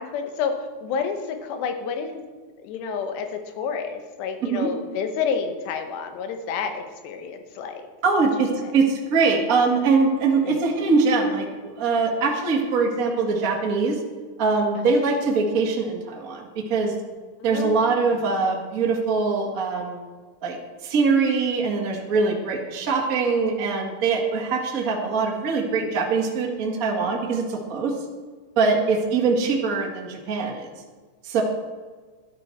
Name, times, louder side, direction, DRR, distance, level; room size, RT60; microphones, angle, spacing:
voice 1, 0.0-2.2 2.6-7.9 10.4-10.6 14.8-15.0 17.4-17.9 28.7-28.9, left 6 dB, 90° left, 7 dB, 3.3 m, -29 dB
voice 2, 8.0-14.0 14.4-16.9 17.4-20.0 20.4-20.6 20.8-27.9 28.5-30.7 31.2-31.4, right 4 dB, 75° right, 0 dB, 0.8 m, -22 dB
12.5 x 11.5 x 4.5 m, 1.4 s
omnidirectional pair, 4.7 m